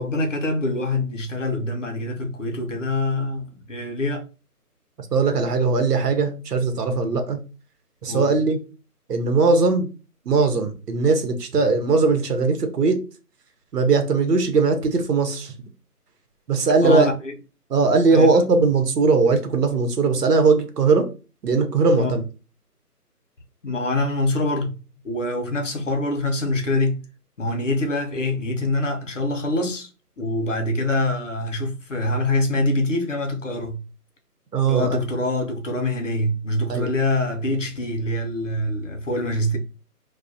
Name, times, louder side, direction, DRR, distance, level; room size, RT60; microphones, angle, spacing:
voice 1, 0.0-4.3 8.1-8.3 16.8-17.3 18.0-18.3 22.0-22.1 23.6-24.7 25.0-27.0 27.4-29.9 30.2-33.8 34.7-39.6, left 1 dB, 50° left, 0.7 m, -25 dB
voice 2, 5.0-7.4 8.0-8.6 9.1-9.9 10.2-13.0 13.7-15.5 16.5-17.1 17.7-21.1 21.4-22.2 34.5-35.0 36.7-36.9, right 4 dB, 75° right, 0.9 m, -19 dB
2.3 x 2.2 x 2.6 m
figure-of-eight pair, 165°, 47 cm